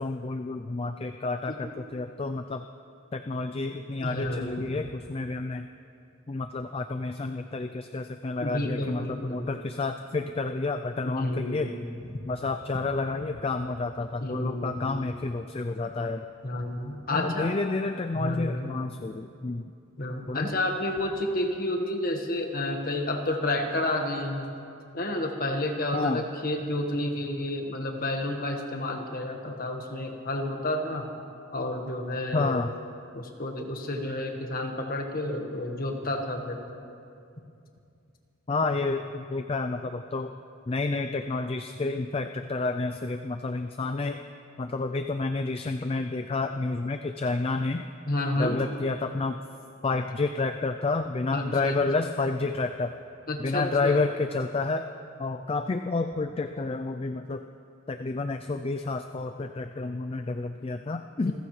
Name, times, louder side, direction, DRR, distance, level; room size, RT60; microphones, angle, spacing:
voice 1, 0.0-2.7 3.1-5.7 6.3-11.7 12.3-16.2 17.1-19.7 20.3-20.5 25.9-26.2 32.3-32.7 38.5-40.3 40.7-44.2 44.6-47.8 48.4-49.4 49.8-52.9 53.4-54.9 55.2-57.4 57.9-61.3, left 3 dB, 25° left, 7 dB, 0.3 m, -30 dB
voice 2, 4.0-4.8 8.4-9.5 11.0-11.8 14.2-15.0 16.4-17.5 18.1-18.7 20.0-24.6 24.9-31.1 31.5-32.6 33.1-36.6 48.1-48.6 51.3-51.8 53.3-54.0 61.2-61.3, left 1 dB, 40° left, 3 dB, 1.4 m, -30 dB
27.5 x 14.5 x 3.2 m, 2.5 s
head